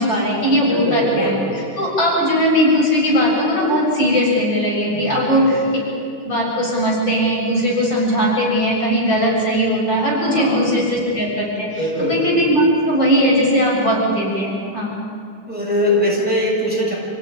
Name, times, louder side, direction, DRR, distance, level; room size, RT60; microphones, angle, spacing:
voice 1, 0.0-1.3 1.8-5.5 6.2-11.8 12.1-14.9, equal, 60° left, -4 dB, 7.7 m, -18 dB
voice 2, 0.7-1.5 4.9-5.4 10.3-10.7 11.8-12.3 15.5-17.0, left 1 dB, 5° right, -5 dB, 7.2 m, -21 dB
28.0 x 17.0 x 9.6 m, 2.2 s
omnidirectional pair, 2.3 m